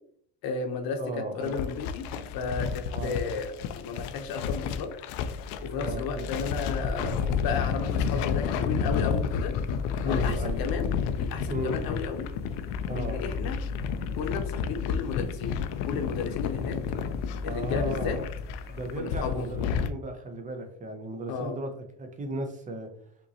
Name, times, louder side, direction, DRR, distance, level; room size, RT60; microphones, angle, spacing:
voice 1, 0.4-1.0 1.3-2.1 2.3-3.5 3.7-4.9 5.6-7.1 7.4-9.5 10.0-10.9 11.2-12.3 13.0-13.6 14.2-15.6 15.9-16.8 17.4-18.2 19.0-19.5 21.3-21.6, left 5 dB, 50° left, 5 dB, 0.9 m, -33 dB
voice 2, 1.0-1.6 2.9-3.2 5.7-6.3 7.0-7.3 10.0-10.7 11.5-11.8 12.9-13.2 17.4-18.3 18.7-21.7 22.0-22.9, right 1 dB, 15° right, 5 dB, 0.5 m, -35 dB
sound 1, 1.4-19.9, left 7 dB, 85° left, 0.6 m, -31 dB
sound 2, 5.1-19.0, left 4 dB, 20° left, 0.7 m, -38 dB
5.2 x 3.0 x 2.7 m, 0.65 s
cardioid pair, 145°, 47 cm